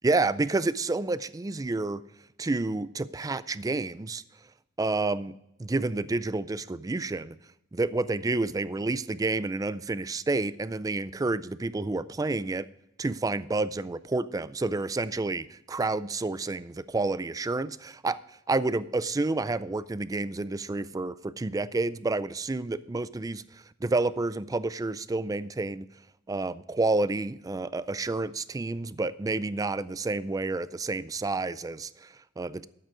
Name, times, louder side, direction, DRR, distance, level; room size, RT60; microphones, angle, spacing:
voice 1, 0.0-2.0 2.4-4.2 4.8-5.3 5.6-7.4 7.7-12.7 13.0-18.2 18.5-23.4 23.8-25.9 26.3-32.7, right 3 dB, 20° right, 16 dB, 0.4 m, -29 dB
12.5 x 7.9 x 4.9 m, 0.84 s
head